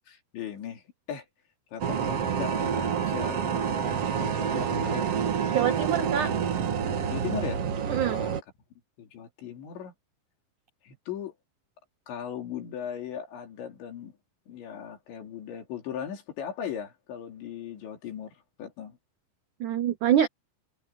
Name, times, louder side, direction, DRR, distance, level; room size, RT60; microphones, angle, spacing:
voice 1, 0.1-1.3 1.7-5.1 7.1-7.6 8.0-8.4 9.0-9.9 10.9-11.3 12.1-14.1 14.5-18.3 18.6-19.0, left 8 dB, 85° left, 5.7 m, -38 dB
sound 1, 1.8-8.4, right 7 dB, 55° right, 1.7 m, -28 dB
voice 2, 5.5-6.3 7.9-8.2 19.6-20.3, right 9 dB, 85° right, 1.7 m, -25 dB
omnidirectional pair, 5.1 m